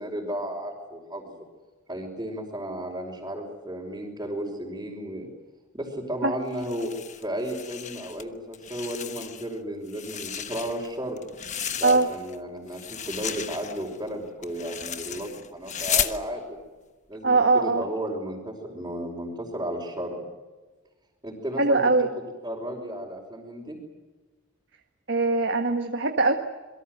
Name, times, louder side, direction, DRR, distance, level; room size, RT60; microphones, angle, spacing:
voice 1, 0.0-1.4 1.9-5.3 5.7-11.2 11.7-16.6 17.1-20.2 21.2-23.8, equal, 15° right, -5 dB, 5.2 m, -34 dB
sound 1, 6.5-8.2 8.5-9.5 9.9-12.4 12.7-16.2, left 9 dB, 35° left, 1.2 m, -33 dB
voice 2, 17.2-17.8 21.6-22.1 25.1-26.3, right 3 dB, 60° right, 4 dB, 1.6 m, -21 dB
27.5 x 23.0 x 7.9 m, 1.2 s
head